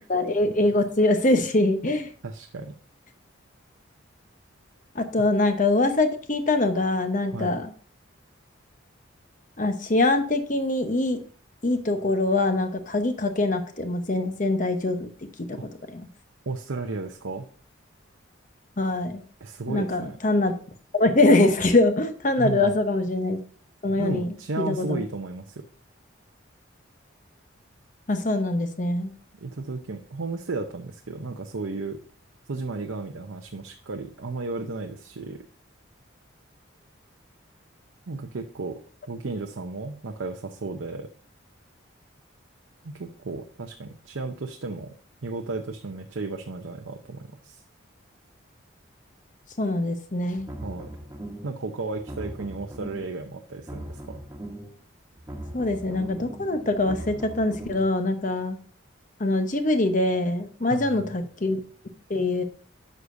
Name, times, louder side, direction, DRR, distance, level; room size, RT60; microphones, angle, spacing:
voice 1, 0.1-2.1 4.9-7.7 9.6-11.2 11.6-15.1 15.4-15.6 15.9-16.1 18.8-19.2 19.7-20.5 20.9-23.4 23.8-25.0 28.1-29.1 49.6-50.5 55.5-58.6 59.2-61.6 62.1-62.4, left 2 dB, 40° left, 7 dB, 0.9 m, -23 dB
voice 2, 2.2-2.7 7.3-7.6 15.5-15.6 16.5-17.5 19.4-20.2 22.4-22.7 24.0-25.7 29.4-32.0 32.5-35.4 38.1-38.8 39.1-41.1 42.8-44.9 45.2-47.6 50.6-50.9 51.4-54.2 60.6-61.0, right 3 dB, 80° right, 4 dB, 0.7 m, -34 dB
sound 1, 50.3-51.6 51.9-53.2 53.5-54.8 55.1-57.9, right 1 dB, 15° right, 1.3 m, -39 dB
9.6 x 6.6 x 2.6 m, 0.43 s
head